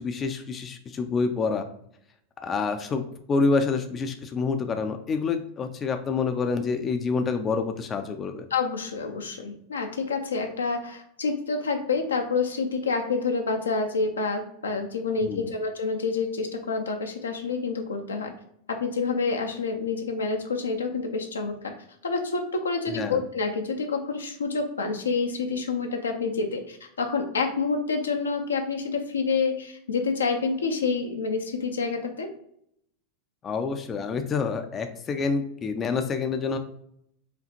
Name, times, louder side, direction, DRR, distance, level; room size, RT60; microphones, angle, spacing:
voice 1, 0.0-1.7 2.4-3.0 3.3-8.5 15.2-15.5 22.9-23.2 33.4-36.6, left 4 dB, 30° left, 7 dB, 0.4 m, -27 dB
voice 2, 8.5-18.3 18.7-21.7 22.0-32.3, left 4 dB, 80° left, 4 dB, 0.6 m, -28 dB
5.0 x 2.4 x 2.8 m, 0.71 s
figure-of-eight pair, 85°, 0 cm